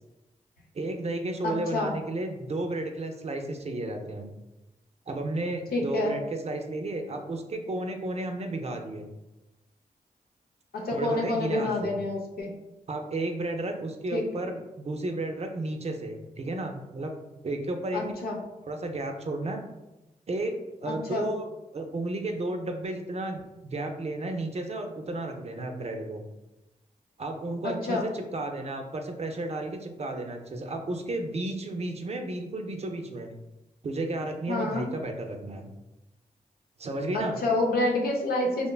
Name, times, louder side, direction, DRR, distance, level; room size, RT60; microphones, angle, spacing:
voice 1, 0.7-4.3 5.1-9.1 10.9-11.9 12.9-17.2 17.4-18.1 18.7-19.6 20.3-20.6 20.8-21.5 21.7-26.2 27.2-33.3 33.8-35.7 36.8-37.4, right 2 dB, 45° right, 4 dB, 0.4 m, -33 dB
voice 2, 1.4-1.9 5.7-6.1 10.7-12.5 14.1-14.5 17.9-18.4 20.8-21.3 27.6-28.1 34.5-34.9 37.1-38.7, left 2 dB, 85° left, 0 dB, 0.5 m, -28 dB
3.1 x 2.1 x 2.2 m, 0.99 s
cardioid pair, 45°, 15 cm